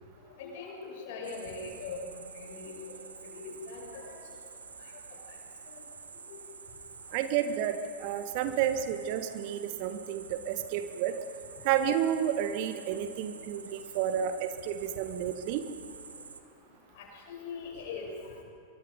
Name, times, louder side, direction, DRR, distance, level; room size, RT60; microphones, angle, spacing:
voice 1, 0.4-2.8 3.3-4.2 14.1-14.2 17.0-18.3, left 4 dB, 50° left, 0 dB, 6.9 m, -41 dB
sound 1, 1.2-16.4, right 5 dB, 75° right, 1.4 m, -48 dB
voice 2, 7.1-11.1 11.6-15.6, right 9 dB, 45° right, 9 dB, 1.5 m, -31 dB
26.0 x 23.5 x 5.4 m, 2.4 s
figure-of-eight pair, 90°, 0 cm